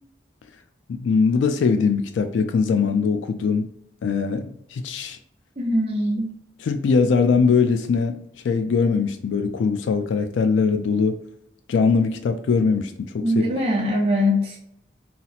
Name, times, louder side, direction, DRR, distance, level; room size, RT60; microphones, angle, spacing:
voice 1, 0.9-3.6 4.0-5.2 6.6-11.2 11.7-13.4, left 5 dB, 85° left, 0.3 m, -21 dB
voice 2, 5.6-6.3 13.2-14.6, left 1 dB, 30° right, 0.6 m, -22 dB
2.7 x 2.0 x 3.9 m
head